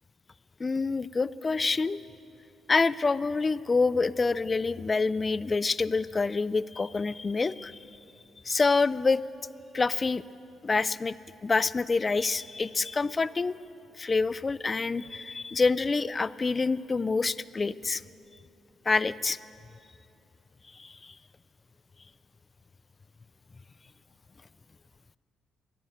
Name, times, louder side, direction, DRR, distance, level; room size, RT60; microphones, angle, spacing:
voice 1, 0.6-2.0 2.7-7.8 8.4-9.2 9.7-10.2 10.6-11.1 11.4-13.6 14.0-18.0 18.9-19.4 20.7-21.1, left 4 dB, 30° left, 18 dB, 0.3 m, -27 dB
11.0 x 11.0 x 9.2 m, 2.7 s
cardioid pair, 90°, 0 cm